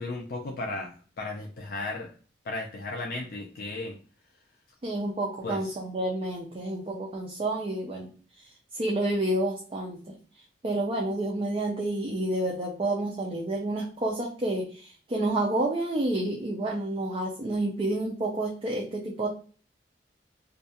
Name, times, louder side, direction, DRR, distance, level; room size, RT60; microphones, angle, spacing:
voice 1, 0.0-2.1 2.4-4.0 5.4-5.7, left 2 dB, 55° left, 0 dB, 0.3 m, -35 dB
voice 2, 4.8-8.1 8.7-10.1 10.6-19.3, right 1 dB, 30° right, -1 dB, 0.4 m, -29 dB
2.3 x 2.2 x 2.7 m, 0.40 s
head